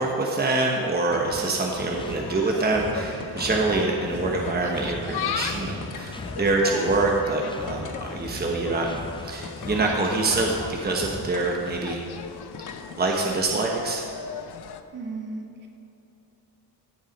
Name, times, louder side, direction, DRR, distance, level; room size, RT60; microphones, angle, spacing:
voice 1, 0.0-8.9 9.2-12.0 13.0-14.0, right 3 dB, 25° right, 0 dB, 1.2 m, -25 dB
Insect, 1.0-14.8, left 8 dB, 75° left, 0.7 m, -38 dB
sound 1, 1.1-1.5 1.8-2.2 3.2-3.9 4.9-5.1 5.7-6.2 6.8-7.0 7.7-8.6 9.4-10.1 11.3-11.6 12.5-13.0 14.1-14.2, left 5 dB, 50° left, 1.1 m, -42 dB
sound 2, 1.3-12.0, left 2 dB, 15° left, 0.6 m, -39 dB
voice 2, 14.9-15.7, right 3 dB, 50° right, 1 dB, 1.7 m, -35 dB
16.5 x 7.2 x 5.4 m, 2.7 s
wide cardioid pair, 130°, 39 cm